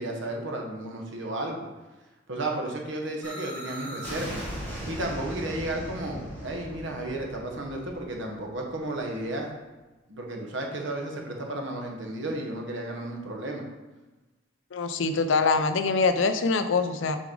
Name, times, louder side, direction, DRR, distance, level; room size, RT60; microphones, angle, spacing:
voice 1, 0.0-1.7 2.3-4.4 4.9-9.5 10.1-13.6, right 1 dB, 70° right, 1 dB, 1.2 m, -33 dB
sound 1, 3.2-9.0, equal, 10° left, 1.7 m, -38 dB
voice 2, 14.7-17.2, left 4 dB, 75° left, 9 dB, 0.5 m, -24 dB
6.3 x 4.8 x 3.8 m, 1.1 s
head